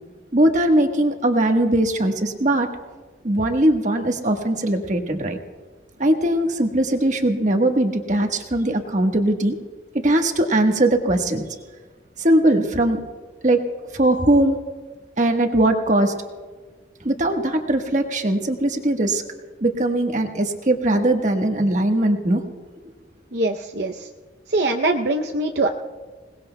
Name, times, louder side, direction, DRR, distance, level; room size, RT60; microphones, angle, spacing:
voice 1, 0.3-2.7 3.2-5.4 6.0-9.6 9.9-11.4 12.2-13.0 13.4-13.6 13.9-14.6 15.2-16.1 17.0-19.2 19.6-22.4, right 1 dB, 40° right, 4 dB, 1.3 m, -20 dB
voice 2, 23.3-24.1 24.5-25.7, right 2 dB, 60° right, 4 dB, 0.7 m, -22 dB
27.5 x 19.0 x 2.2 m, 1.4 s
head